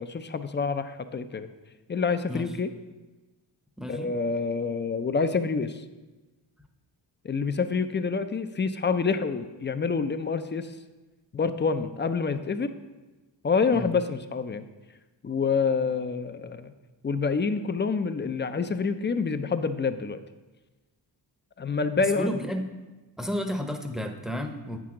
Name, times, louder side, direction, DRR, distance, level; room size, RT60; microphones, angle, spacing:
voice 1, 0.0-1.5 1.9-2.7 3.9-5.8 7.2-10.7 11.3-12.7 13.4-14.6 15.2-16.7 17.0-20.2 21.6-22.3, left 5 dB, 25° left, 10 dB, 0.4 m, -27 dB
voice 2, 3.8-4.1 13.7-13.9 22.1-22.6 23.2-24.8, equal, ahead, 4 dB, 0.8 m, -32 dB
8.2 x 6.1 x 3.7 m, 1.2 s
cardioid pair, 60°, 45 cm